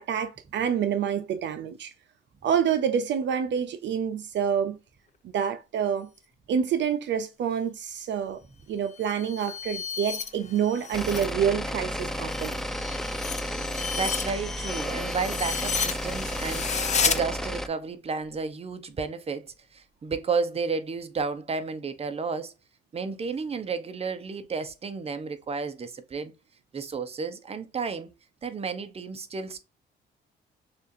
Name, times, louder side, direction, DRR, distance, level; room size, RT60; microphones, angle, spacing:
voice 1, 0.0-1.9 2.4-4.8 5.3-6.1 6.5-8.4 8.7-12.6, right 8 dB, 65° right, 0.5 m, -27 dB
sound 1, 8.9-11.3 11.7-17.2, left 6 dB, 35° left, 0.7 m, -32 dB
sound 2, 10.9-17.7, equal, ahead, 0.4 m, -32 dB
voice 2, 14.0-22.5 22.9-26.3 26.7-28.1 28.4-29.6, right 5 dB, 30° right, 0.7 m, -32 dB
6.5 x 2.5 x 2.6 m
cardioid pair, 90°, 20 cm